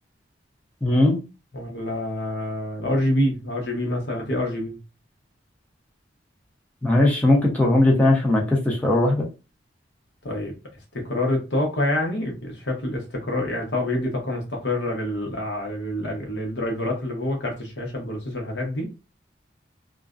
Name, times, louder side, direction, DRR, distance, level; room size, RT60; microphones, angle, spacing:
voice 1, 0.8-1.2 6.8-9.3, left 1 dB, 10° left, 0.6 m, -19 dB
voice 2, 1.5-4.8 10.2-10.5 10.9-18.9, left 1 dB, 70° left, 0.9 m, -27 dB
2.4 x 2.1 x 2.4 m
head